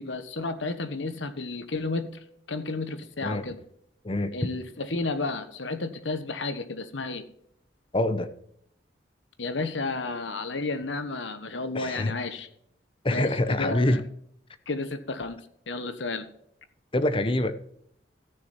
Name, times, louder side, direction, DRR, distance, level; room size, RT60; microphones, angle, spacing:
voice 1, 0.0-2.1 2.5-3.6 4.3-7.2 9.4-12.5 13.1-14.0 14.7-15.4 15.7-16.2, left 3 dB, 90° left, 1.2 m, -32 dB
voice 2, 4.0-4.5 7.9-8.3 11.7-12.1 13.0-14.0 16.9-17.6, left 1 dB, 30° left, 0.8 m, -25 dB
14.0 x 6.6 x 4.3 m
head